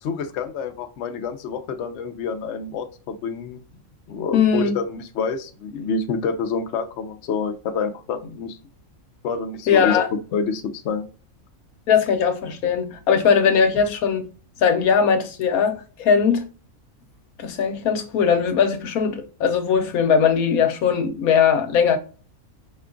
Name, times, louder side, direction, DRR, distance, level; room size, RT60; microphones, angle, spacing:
voice 1, 0.0-3.6 4.1-8.6 9.2-11.1, left 5 dB, 60° left, 0.9 m, -28 dB
voice 2, 4.3-4.7 9.7-10.1 11.9-14.3 14.6-16.4 17.4-22.0, left 6 dB, 85° left, 1.2 m, -19 dB
5.1 x 2.3 x 3.7 m
omnidirectional pair, 1.5 m